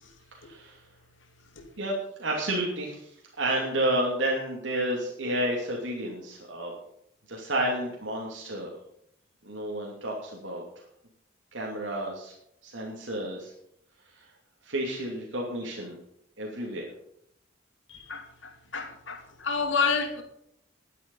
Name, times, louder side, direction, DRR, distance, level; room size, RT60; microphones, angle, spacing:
voice 1, 0.4-0.8 1.8-6.7 7.3-8.7 9.4-10.6 11.5-12.3 12.6-13.5 14.1-14.2 14.6-16.0 16.4-16.8, right 1 dB, 75° right, 2.7 m, -31 dB
voice 2, 17.9-20.2, left 5 dB, 75° left, 2.5 m, -29 dB
11.5 x 10.5 x 5.5 m
head